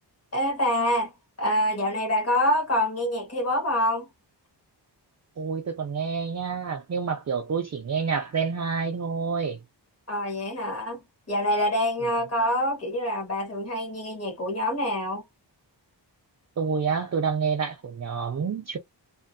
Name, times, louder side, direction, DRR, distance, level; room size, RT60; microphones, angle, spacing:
voice 1, 0.3-1.1 1.4-4.1 10.1-11.0 11.3-15.2, left 1 dB, 35° left, 1.6 m, -26 dB
voice 2, 5.4-9.6 16.6-18.8, right 5 dB, 40° right, 0.5 m, -28 dB
3.3 x 2.2 x 2.6 m
wide cardioid pair, 130°, 43 cm